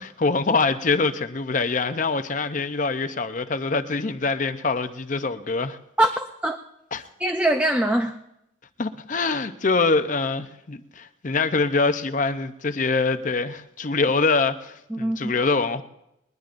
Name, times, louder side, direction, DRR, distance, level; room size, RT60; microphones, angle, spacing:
voice 1, 0.0-5.8 6.9-7.0 8.8-15.8, left 3 dB, 45° left, 0.7 m, -24 dB
voice 2, 6.0-6.6 7.2-8.2 14.9-15.3, right 1 dB, 10° right, 0.5 m, -23 dB
21.0 x 20.0 x 2.6 m
head